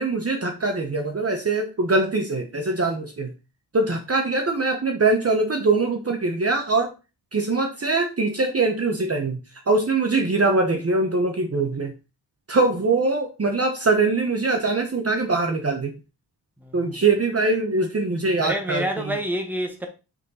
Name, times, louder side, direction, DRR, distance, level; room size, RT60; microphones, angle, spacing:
voice 1, 0.0-3.3 3.7-6.9 7.3-9.4 9.7-11.9 12.5-15.9 16.7-18.9, right 3 dB, 35° right, 0.9 m, -22 dB
voice 2, 16.6-16.9 18.4-19.9, right 1 dB, 5° right, 1.4 m, -28 dB
5.5 x 4.3 x 4.1 m
wide cardioid pair, 105°, 42 cm